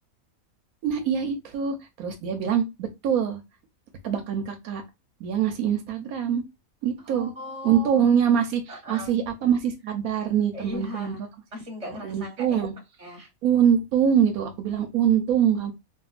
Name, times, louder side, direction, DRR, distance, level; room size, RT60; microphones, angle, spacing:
voice 1, 0.8-3.4 4.0-4.8 5.2-6.4 6.8-7.3 7.6-11.1 12.0-12.7 13.4-15.7, right 8 dB, 85° right, 1.2 m, -24 dB
voice 2, 7.0-8.1 8.7-9.1 10.5-11.2 11.5-12.6 13.0-13.3, left 1 dB, 25° right, 1.4 m, -38 dB
3.6 x 2.4 x 2.4 m
omnidirectional pair, 1.5 m